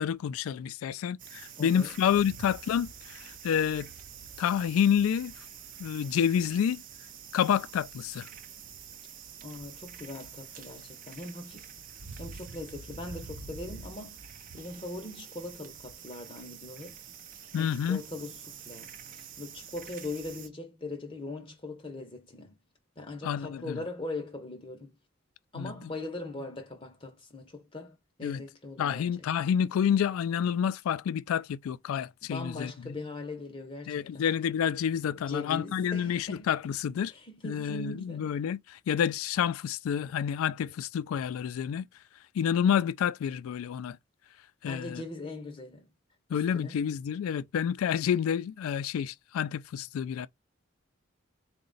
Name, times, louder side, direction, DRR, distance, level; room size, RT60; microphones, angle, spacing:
voice 1, 0.0-3.9 4.4-5.3 5.8-6.8 7.3-8.3 17.5-18.0 23.2-23.8 25.5-25.7 28.2-28.4 28.8-32.9 33.9-37.1 37.4-41.9 42.3-44.0 44.6-45.0 46.3-50.3, left 8 dB, 85° left, 0.3 m, -29 dB
sound 1, 1.2-20.5, right 6 dB, 40° right, 0.5 m, -47 dB
voice 2, 1.6-2.0 9.4-11.7 12.2-14.2 14.5-17.0 17.6-22.6 23.0-24.9 25.5-29.1 32.2-34.2 35.2-36.5 37.1-38.4 44.7-45.9 46.3-46.8, left 2 dB, 25° left, 0.6 m, -40 dB
3.9 x 2.1 x 3.8 m
head